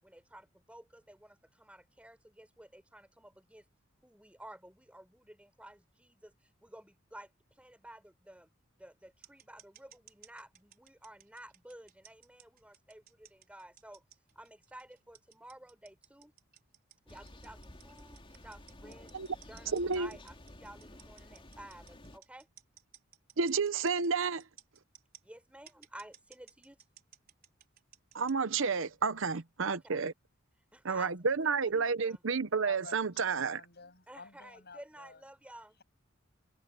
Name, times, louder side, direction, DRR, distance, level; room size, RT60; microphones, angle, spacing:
voice 1, 0.0-3.6 4.0-6.3 6.6-7.3 7.6-8.5 8.8-14.0 14.4-16.3 17.1-19.1 19.5-22.5 25.2-26.8 29.6-30.0 30.7-31.3 31.6-32.2 34.1-35.8, right 1 dB, 5° right, 5.6 m, -53 dB
sound 1, 9.2-25.2 25.7-28.3, right 10 dB, 50° right, 4.8 m, -57 dB
Thunder, 17.1-22.2, left 1 dB, 25° left, 3.7 m, -53 dB
voice 2, 19.7-20.1 23.4-24.4 28.1-30.1 30.8-33.6, right 5 dB, 70° right, 0.8 m, -30 dB
voice 3, 32.6-35.2, left 4 dB, 55° left, 7.3 m, -51 dB
head